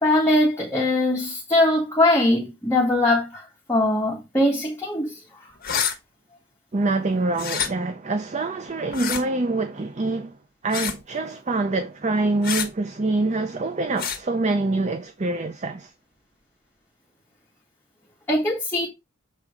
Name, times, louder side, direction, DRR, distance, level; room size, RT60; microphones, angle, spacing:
voice 1, 0.0-5.2 18.3-18.9, left 1 dB, 10° left, 1.7 m, -21 dB
sound 1, 5.6-5.9 7.3-7.7 8.9-9.2 10.7-11.0 12.4-12.7 14.0-14.2, left 8 dB, 45° left, 1.4 m, -26 dB
voice 2, 6.7-10.4 10.6-15.9, right 2 dB, 35° right, 0.6 m, -25 dB
7.6 x 3.7 x 4.9 m
head